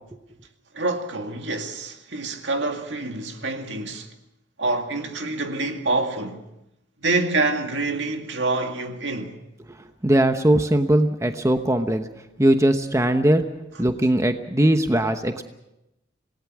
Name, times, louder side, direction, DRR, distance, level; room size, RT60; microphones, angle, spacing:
voice 1, 0.7-4.1 4.6-6.4 7.0-9.4, right 2 dB, 70° right, 2.2 m, -26 dB
voice 2, 10.0-12.1 12.4-13.5 13.8-15.4, right 1 dB, 15° right, 1.0 m, -20 dB
27.0 x 18.5 x 6.2 m
head